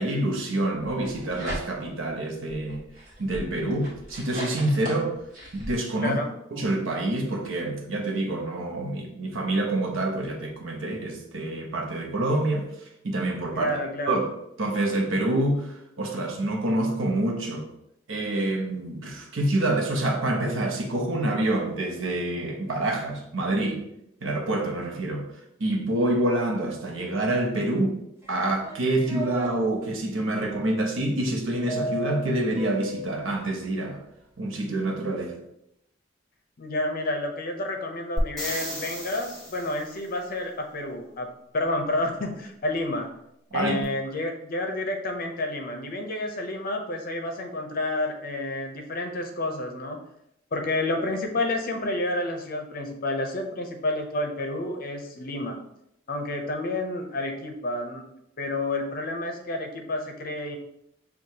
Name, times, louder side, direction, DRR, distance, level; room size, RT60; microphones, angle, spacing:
voice 1, 0.0-2.8 3.2-5.2 5.5-6.2 6.5-12.7 13.0-13.8 14.1-14.3 14.6-15.7 16.0-17.7 18.1-23.8 24.2-25.3 25.6-28.0 28.3-34.0 34.4-35.3 43.5-43.8, right 1 dB, 80° right, 0.8 m, -27 dB
sound 1, 0.8-2.0 2.5-5.7, equal, 45° right, 1.4 m, -38 dB
voice 2, 6.0-6.3 13.5-14.2 36.6-43.1 43.5-50.0 50.5-55.6 56.1-58.0 58.4-60.6, left 2 dB, 45° left, 0.6 m, -30 dB
sound 2, 28.2-29.5 31.7-33.3, right 1 dB, 15° right, 0.7 m, -34 dB
sound 3, 38.2-40.0 43.8-43.9, equal, 5° left, 1.2 m, -33 dB
6.3 x 2.3 x 2.8 m
head